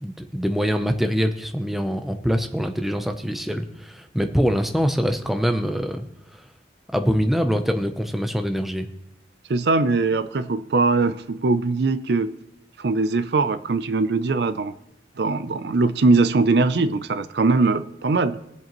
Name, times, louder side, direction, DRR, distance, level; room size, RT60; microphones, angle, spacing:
voice 1, 0.0-6.0 6.3-6.4 6.9-8.9, equal, ahead, 6 dB, 0.6 m, -24 dB
voice 2, 9.5-12.3 12.8-14.7 15.2-18.4, right 3 dB, 60° right, 13 dB, 0.5 m, -21 dB
21.5 x 7.7 x 3.0 m, 0.82 s
head